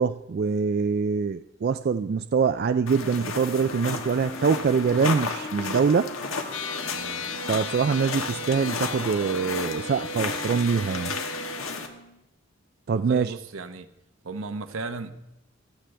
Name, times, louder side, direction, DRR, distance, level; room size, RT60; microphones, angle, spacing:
voice 1, 0.0-6.1 7.5-11.2 12.9-13.3, right 5 dB, 50° right, 11 dB, 0.3 m, -24 dB
sound 1, 2.9-11.9, left 4 dB, 80° left, 1.4 m, -33 dB
Wind instrument woodwind instrument, 3.6-12.2, left 2 dB, 40° left, 1.2 m, -43 dB
sound 2, 6.5-11.6, left 2 dB, 60° left, 0.8 m, -36 dB
voice 2, 6.9-7.3 12.9-13.9 14.2-15.1, right 3 dB, 80° right, 9 dB, 1.0 m, -35 dB
16.0 x 13.0 x 3.4 m, 0.92 s
head